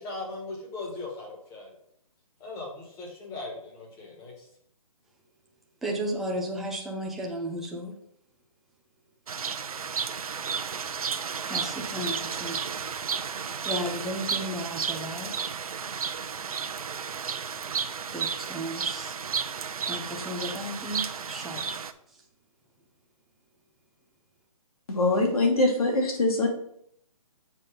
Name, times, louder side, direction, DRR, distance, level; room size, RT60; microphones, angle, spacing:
voice 1, 0.0-1.7 2.4-4.5, left 2 dB, 15° left, -1 dB, 1.7 m, -39 dB
voice 2, 5.8-8.0 11.4-12.6 13.6-15.5 18.1-19.2 19.9-21.6, right 1 dB, ahead, -2 dB, 0.4 m, -34 dB
sound 1, 9.3-21.9, right 6 dB, 75° right, 0.7 m, -33 dB
voice 3, 24.9-26.5, left 2 dB, 80° left, 0 dB, 2.8 m, -23 dB
7.4 x 4.1 x 5.2 m, 0.69 s
hypercardioid pair, 160°, 18 cm